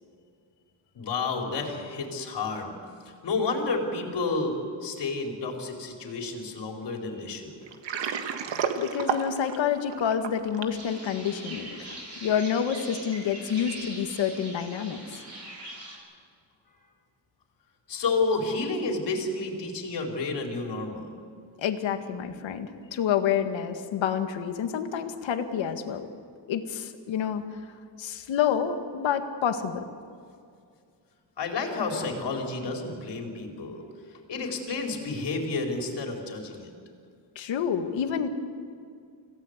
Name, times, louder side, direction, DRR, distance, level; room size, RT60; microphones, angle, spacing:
voice 1, 0.9-2.8 3.0-7.6 17.9-21.1 31.4-33.8 34.3-36.7, left 3 dB, 65° left, 1 dB, 4.3 m, -30 dB
Water, 7.7-10.8, right 7 dB, 70° right, 1.8 m, -31 dB
voice 2, 8.8-15.0 21.6-26.1 26.5-27.4 28.0-29.8 37.4-38.3, left 8 dB, 80° left, 7 dB, 1.9 m, -28 dB
sound 1, 10.7-16.0, right 1 dB, 40° right, 6.4 m, -42 dB
26.0 x 17.0 x 8.1 m, 2.3 s
cardioid pair, 125°, 45 cm